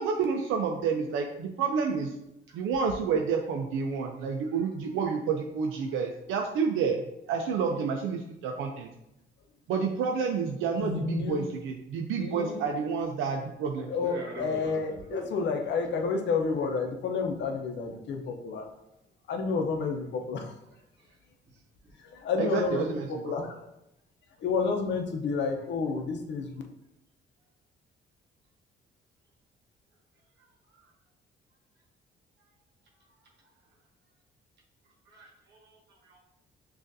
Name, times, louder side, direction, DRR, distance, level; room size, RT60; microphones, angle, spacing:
voice 1, 0.0-2.1 2.5-8.9 9.7-13.9 22.4-23.3, right 5 dB, 90° right, 3 dB, 0.5 m, -29 dB
voice 2, 10.8-11.4 12.2-12.6 13.9-18.7 19.3-20.5 22.1-23.6 24.4-26.6, left 4 dB, 65° left, 3 dB, 0.7 m, -30 dB
voice 3, 14.0-15.3 21.0-21.2 21.5-21.9 30.4-30.9 33.0-33.1 35.0-36.2, equal, 60° right, -2 dB, 1.1 m, -43 dB
6.1 x 2.5 x 2.6 m, 0.85 s
cardioid pair, 90°, 20 cm